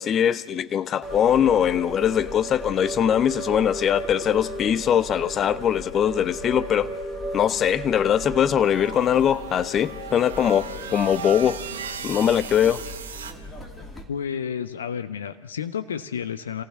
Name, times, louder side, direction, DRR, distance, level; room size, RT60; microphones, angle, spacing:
voice 1, 0.0-6.9 7.3-11.6 12.0-12.8, left 9 dB, 25° left, 0.7 m, -21 dB
sound 1, 1.0-14.0, equal, 10° left, 2.6 m, -36 dB
sound 2, 8.6-13.3, right 7 dB, 60° right, 1.4 m, -37 dB
voice 2, 14.1-16.6, left 7 dB, 65° left, 0.9 m, -31 dB
27.5 x 15.5 x 7.2 m
figure-of-eight pair, 90°, 0 cm